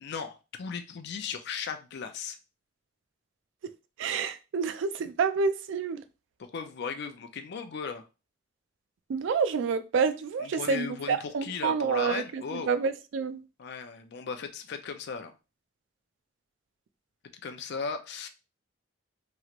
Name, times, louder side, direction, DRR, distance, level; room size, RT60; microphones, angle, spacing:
voice 1, 0.0-2.4 6.4-8.1 10.4-12.7 13.6-15.4 17.4-18.3, left 5 dB, 60° left, 0.4 m, -37 dB
voice 2, 4.0-6.0 9.1-13.4, right 5 dB, 70° right, 0.3 m, -28 dB
3.0 x 2.4 x 2.9 m
head